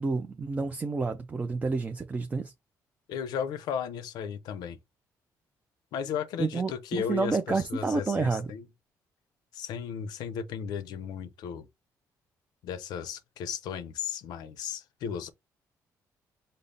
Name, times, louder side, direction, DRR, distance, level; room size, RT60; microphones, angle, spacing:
voice 1, 0.0-2.5 6.4-8.5, right 4 dB, 20° right, 0.5 m, -29 dB
voice 2, 3.1-4.8 5.9-8.7 9.5-11.7 12.6-15.3, left 7 dB, 90° left, 0.6 m, -35 dB
5.3 x 2.1 x 3.9 m
cardioid pair, 140°, 7 cm